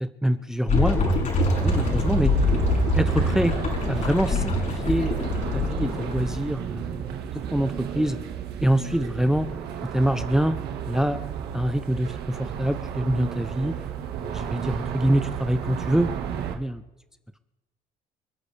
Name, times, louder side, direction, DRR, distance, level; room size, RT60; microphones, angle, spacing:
voice 1, 0.0-2.3 3.0-3.6 3.9-7.1 7.3-8.2 8.6-9.5 9.9-10.6 10.9-11.2 11.5-13.8 14.3-16.1 16.5-16.8, right 1 dB, 5° right, 10 dB, 0.7 m, -25 dB
sound 1, 0.7-6.4, left 2 dB, 50° left, 6.8 m, -24 dB
sound 2, 1.5-16.5, right 8 dB, 75° right, 1.7 m, -33 dB
28.5 x 9.7 x 3.4 m, 1.0 s
cardioid pair, 110°, 17 cm